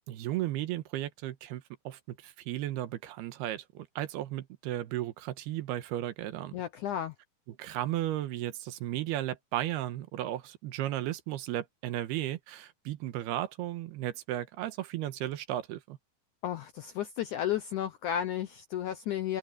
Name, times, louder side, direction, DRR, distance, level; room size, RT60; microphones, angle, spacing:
voice 1, 0.1-6.6 7.5-16.0, right 13 dB, 80° right, 3.0 m, -35 dB
voice 2, 6.5-7.1 16.4-19.4, left 10 dB, 75° left, 1.8 m, -33 dB
omnidirectional pair, 4.6 m